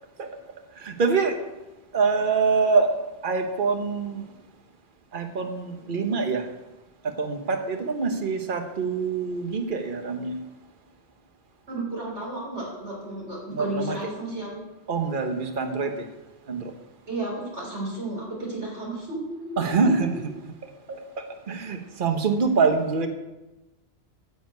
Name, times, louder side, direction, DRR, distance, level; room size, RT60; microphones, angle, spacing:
voice 1, 0.8-1.3 1.9-2.9 3.2-4.2 5.1-6.5 7.2-10.4 13.5-14.0 14.9-15.9 16.5-16.7 19.6-20.1 20.9-23.1, right 4 dB, 50° right, 5 dB, 1.3 m, -25 dB
voice 2, 11.7-14.5 17.1-19.9, right 2 dB, 85° right, -2 dB, 4.1 m, -33 dB
9.7 x 7.1 x 8.2 m, 1.0 s
omnidirectional pair, 1.1 m